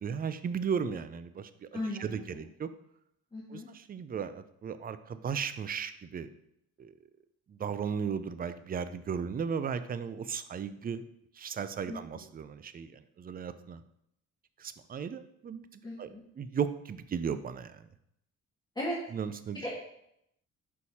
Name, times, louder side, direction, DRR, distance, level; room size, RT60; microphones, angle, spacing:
voice 1, 0.0-2.7 3.5-6.3 6.8-6.9 7.5-11.0 11.4-13.8 14.6-15.7 16.0-16.1 16.4-17.8 19.1-19.6, right 7 dB, 30° right, 12 dB, 0.4 m, -36 dB
voice 2, 1.7-2.4 3.3-3.7 11.9-12.0 15.8-16.2 18.8-18.9 19.6-19.7, left 1 dB, 15° left, -6 dB, 1.5 m, -36 dB
6.5 x 5.4 x 2.8 m, 0.75 s
cardioid pair, 90°, 30 cm